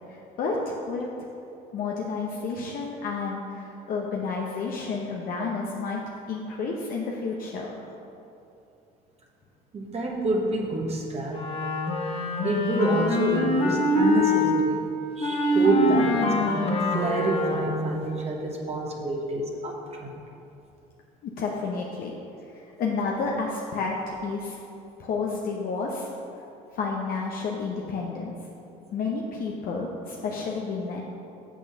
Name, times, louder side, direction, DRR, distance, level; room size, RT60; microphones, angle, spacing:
voice 1, 0.1-1.1 1.7-6.0 6.3-7.7 21.2-22.1 22.4-24.6 25.0-26.1 26.7-28.4 28.9-31.0, left 4 dB, 60° left, -2 dB, 0.9 m, -30 dB
voice 2, 9.7-11.5 12.4-14.8 15.2-16.6 16.9-20.2, right 2 dB, 40° right, -1 dB, 1.2 m, -28 dB
Wind instrument woodwind instrument, 11.3-14.5 15.2-17.9, left 1 dB, 35° left, 1.2 m, -24 dB
6.2 x 6.2 x 5.7 m, 2.7 s
supercardioid pair, 85°, 17 cm